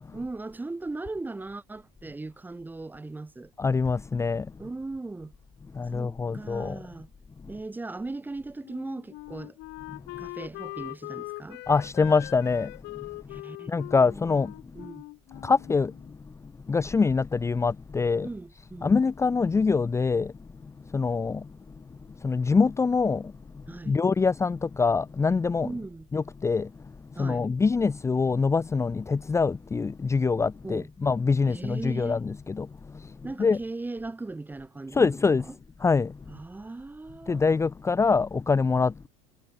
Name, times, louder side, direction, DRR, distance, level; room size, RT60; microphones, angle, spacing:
voice 1, 0.1-3.5 4.6-5.3 5.9-7.1 7.5-9.6 10.2-11.6 13.3-13.7 14.0-14.3 14.7-15.1 18.2-18.9 23.7-24.0 25.6-26.1 27.2-27.4 30.6-30.9 31.5-32.2 33.2-35.5 36.3-37.4, right 3 dB, 10° right, 1.4 m, -38 dB
voice 2, 3.6-4.5 5.7-6.8 9.9-10.0 11.7-12.7 13.2-13.4 13.7-14.5 15.4-18.3 18.8-20.3 20.6-21.5 21.8-21.9 22.2-25.7 26.1-26.7 27.1-33.6 34.9-35.5 35.8-36.2 37.3-39.1, left 4 dB, 15° left, 1.0 m, -25 dB
Wind instrument woodwind instrument, 8.6-16.1, left 22 dB, 55° left, 4.3 m, -42 dB
supercardioid pair, 135°, 21 cm